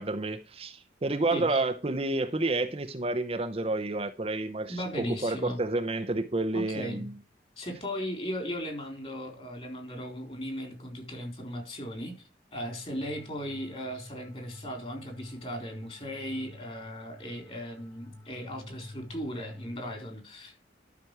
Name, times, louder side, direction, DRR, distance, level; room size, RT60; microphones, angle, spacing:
voice 1, 0.0-7.1, right 2 dB, 30° right, 0.6 m, -30 dB
voice 2, 1.3-1.6 4.7-5.6 6.5-7.1 7.6-12.2 12.5-20.6, equal, 30° left, 3.7 m, -37 dB
sound 1, 12.5-20.0, left 1 dB, 15° left, 0.9 m, -50 dB
12.0 x 6.0 x 4.7 m
head